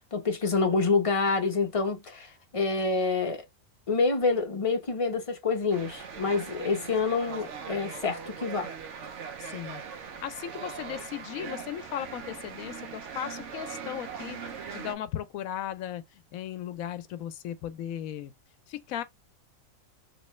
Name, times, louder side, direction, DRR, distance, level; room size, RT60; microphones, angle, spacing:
voice 1, 0.1-3.4 3.9-8.7, left 4 dB, 30° left, 0.8 m, -27 dB
sound 1, 5.7-14.9, right 6 dB, 65° right, 1.0 m, -40 dB
voice 2, 9.4-9.8 10.2-14.4 14.7-16.0 16.3-18.3 18.7-19.0, left 11 dB, 85° left, 1.0 m, -36 dB
3.1 x 3.0 x 3.0 m
omnidirectional pair, 1.4 m